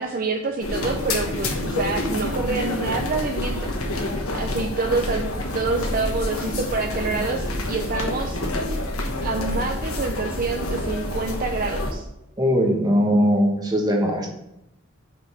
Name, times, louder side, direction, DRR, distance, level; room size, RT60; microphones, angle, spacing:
voice 1, 0.0-8.4 9.2-12.1, right 3 dB, 40° right, 3 dB, 0.5 m, -27 dB
sound 1, 0.6-11.9, left 1 dB, 85° left, 1.3 m, -28 dB
voice 2, 12.4-14.3, equal, 20° right, 1 dB, 1.2 m, -20 dB
5.2 x 5.1 x 6.2 m, 0.86 s
head